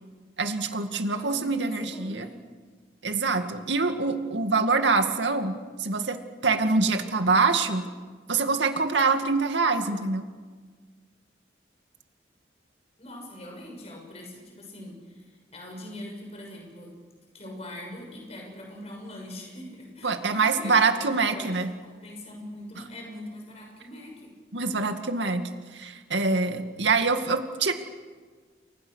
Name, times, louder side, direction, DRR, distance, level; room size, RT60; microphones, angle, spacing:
voice 1, 0.4-2.2 3.0-7.8 8.3-10.2 20.0-21.7 24.5-25.4 25.7-27.7, right 4 dB, 85° right, 6 dB, 2.2 m, -25 dB
voice 2, 1.1-2.3 13.0-16.9 17.3-24.3, left 1 dB, 35° left, 0 dB, 6.5 m, -42 dB
30.0 x 23.5 x 6.5 m, 1.5 s
head